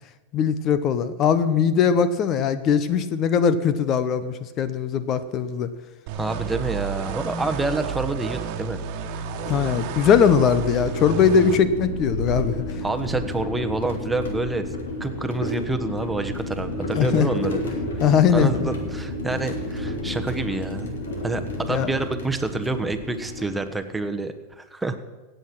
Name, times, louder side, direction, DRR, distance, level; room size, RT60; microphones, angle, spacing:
voice 1, 0.3-5.7 9.5-12.6 17.0-17.3 18.0-18.7 21.7-21.9, left 7 dB, 40° left, 13 dB, 0.8 m, -20 dB
sound 1, 6.1-11.6, right 7 dB, 55° right, 1.4 m, -31 dB
voice 2, 6.2-8.8 12.8-14.6 15.0-17.6 18.0-20.9 21.2-25.0, right 2 dB, 10° right, 7 dB, 1.2 m, -28 dB
sound 2, 9.1-24.1, left 1 dB, 80° left, 2.8 m, -31 dB
17.0 x 8.0 x 6.1 m, 1.2 s
hypercardioid pair, 110°, 0 cm